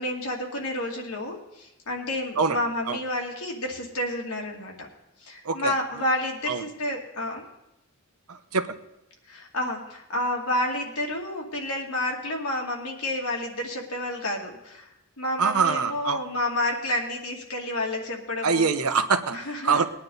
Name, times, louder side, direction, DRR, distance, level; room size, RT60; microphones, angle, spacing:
voice 1, 0.0-4.9 5.2-7.4 9.3-14.9 15.2-18.7 19.3-19.9, left 1 dB, 80° left, 0 dB, 2.5 m, -30 dB
voice 2, 8.3-8.8 15.4-16.2 18.4-19.4 19.6-19.9, right 5 dB, 85° right, 9 dB, 1.0 m, -24 dB
20.5 x 9.6 x 4.0 m, 0.88 s
head